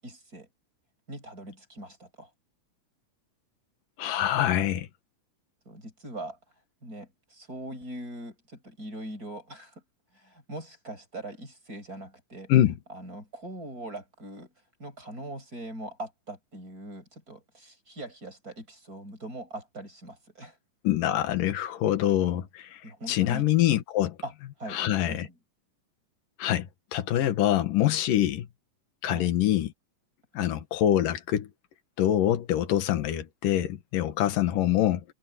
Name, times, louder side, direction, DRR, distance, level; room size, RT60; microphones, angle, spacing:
voice 1, 0.0-0.5 1.1-2.3 5.7-6.4 6.8-9.7 10.1-12.5 12.9-14.5 14.8-20.6 22.8-23.4 24.2-24.3 24.6-24.8 25.1-25.4 29.1-29.4 30.4-30.6, right 1 dB, 25° right, 7.8 m, -41 dB
voice 2, 4.0-4.9 12.5-12.8 20.8-22.8 23.1-24.2 24.7-25.3 26.4-26.7 26.9-28.5 29.0-29.7 30.3-31.5 32.0-35.0, left 12 dB, 80° left, 3.1 m, -25 dB
omnidirectional pair, 3.9 m